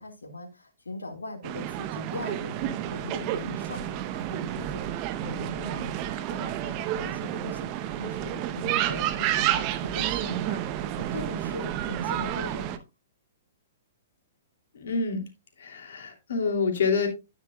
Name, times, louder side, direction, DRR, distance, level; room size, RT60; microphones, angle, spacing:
voice 1, 0.0-12.8, left 2 dB, 85° left, 4 dB, 1.9 m, -40 dB
sound 1, 1.4-12.8, right 12 dB, 35° right, 0.9 m, -30 dB
voice 2, 14.7-15.2 15.6-17.1, left 5 dB, 65° left, 4 dB, 2.8 m, -27 dB
11.0 x 9.1 x 2.3 m, 0.24 s
hypercardioid pair, 120°, 0 cm